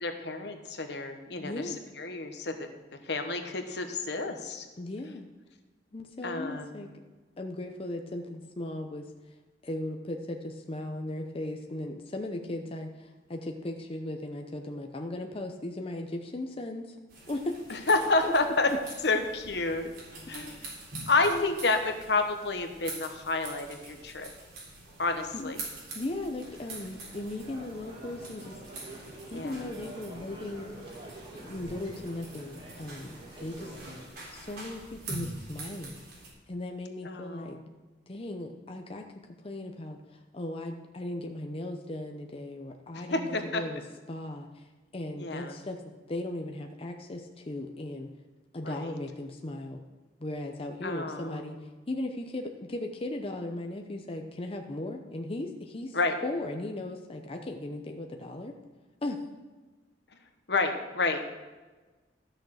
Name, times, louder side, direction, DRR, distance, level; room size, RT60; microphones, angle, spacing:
voice 1, 0.0-2.7 3.1-4.7 6.2-6.8 17.7-18.7 19.0-19.9 20.3-20.6 21.1-24.3 25.0-25.6 29.3-29.7 37.0-37.7 42.9-43.6 45.2-45.6 48.6-48.9 50.8-51.5 55.9-56.2 60.5-61.4, left 3 dB, 70° left, 6 dB, 1.2 m, -30 dB
voice 2, 1.4-1.8 4.8-5.3 5.9-6.9 7.4-9.1 9.6-16.9 17.3-17.6 18.2-18.3 20.6-20.7 21.3-21.6 25.3-25.5 25.9-28.9 29.3-30.7 31.3-36.0 36.5-37.6 38.1-39.1 39.4-43.8 44.1-45.8 46.1-48.1 48.5-49.8 50.2-51.6 51.9-56.0 56.2-58.5 59.0-59.2, left 1 dB, 35° left, 3 dB, 0.7 m, -37 dB
sound 1, 17.1-36.3, right 2 dB, 60° right, 3.8 m, -45 dB
sound 2, 26.4-34.1, right 1 dB, 30° right, 2.3 m, -47 dB
13.0 x 6.5 x 6.4 m, 1.3 s
head